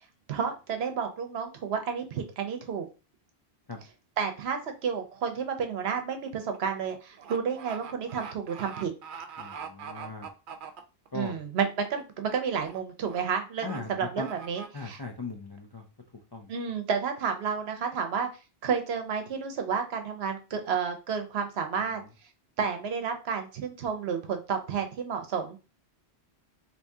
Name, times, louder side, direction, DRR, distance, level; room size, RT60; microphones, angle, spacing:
voice 1, 0.3-2.9 4.2-8.9 11.1-15.0 16.5-18.3 18.6-22.0 22.6-25.6, right 6 dB, 75° right, 6 dB, 0.9 m, -31 dB
sound 1, 5.2-5.5 5.8-11.3 11.7-12.0 12.3-12.8 13.1-13.2 13.6-13.8 14.2-14.7, right 6 dB, 60° right, 0.6 m, -43 dB
voice 2, 9.4-10.3 11.1-11.4 13.6-14.3 14.7-15.8 16.3-16.5, left 3 dB, 40° left, 1 dB, 0.3 m, -38 dB
2.9 x 2.7 x 3.4 m, 0.31 s
omnidirectional pair, 1.1 m